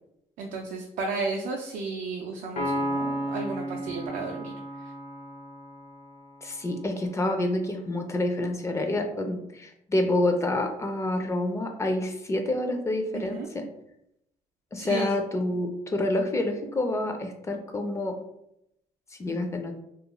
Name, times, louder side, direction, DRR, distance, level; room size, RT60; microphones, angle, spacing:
voice 1, 0.4-4.9 13.1-13.5 14.8-15.1 19.3-19.4, right 4 dB, 80° right, 0 dB, 0.4 m, -34 dB
Piano, 2.6-6.2, equal, 60° left, 0.6 m, -33 dB
voice 2, 6.4-13.6 14.7-18.2 19.2-19.8, left 1 dB, 20° left, 5 dB, 0.4 m, -28 dB
2.4 x 2.3 x 2.9 m, 0.80 s
cardioid pair, 110°, 13 cm